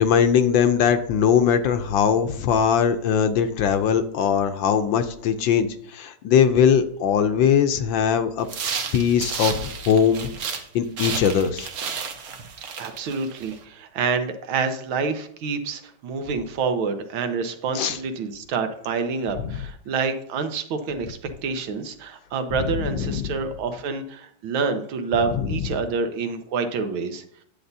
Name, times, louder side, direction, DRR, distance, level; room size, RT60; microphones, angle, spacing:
voice 1, 0.0-8.5 8.9-10.3 10.7-11.7 17.7-18.0 19.5-19.6 23.0-23.3 25.4-25.6, left 7 dB, 75° left, 9 dB, 1.2 m, -20 dB
sound 1, 8.4-10.7 11.0-13.6, right 6 dB, 55° right, 1.2 m, -32 dB
voice 2, 12.8-27.2, right 5 dB, 75° right, 8 dB, 1.7 m, -27 dB
10.0 x 8.1 x 2.7 m, 0.65 s
omnidirectional pair, 2.3 m